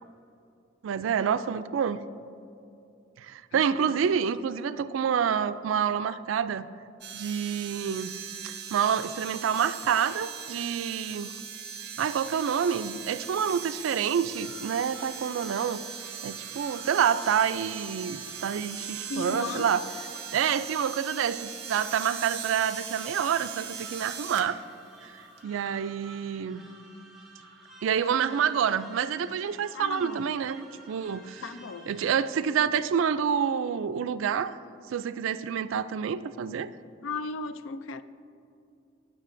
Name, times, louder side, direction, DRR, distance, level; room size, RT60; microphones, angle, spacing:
voice 1, 0.8-2.0 3.2-6.7 7.1-8.1 8.4-11.3 12.0-15.8 16.2-19.8 20.3-24.6 25.0-25.1 25.4-26.6 27.8-31.4 31.9-34.6 34.9-36.7, right 7 dB, 85° right, 14 dB, 0.3 m, -28 dB
voice 2, 3.5-4.0 19.1-19.7 29.7-30.3 31.4-32.0 37.0-38.0, left 4 dB, 85° left, 13 dB, 0.4 m, -36 dB
sound 1, 7.0-24.5 25.4-25.5, right 7 dB, 55° right, 0.9 m, -40 dB
sound 2, 14.3-32.1, right 2 dB, ahead, 1.6 m, -51 dB
18.0 x 6.2 x 2.6 m, 2.7 s
head